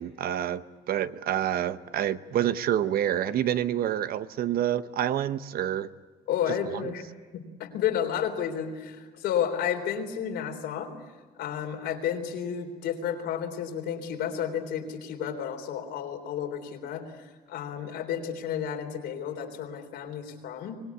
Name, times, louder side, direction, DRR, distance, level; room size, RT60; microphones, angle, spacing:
voice 1, 0.0-5.9, right 11 dB, 60° right, 13 dB, 0.9 m, -28 dB
voice 2, 6.3-7.0 7.3-10.9 11.4-20.8, left 8 dB, 80° left, 3 dB, 3.7 m, -31 dB
25.0 x 19.5 x 8.5 m, 1.4 s
cardioid pair, 110°, 17 cm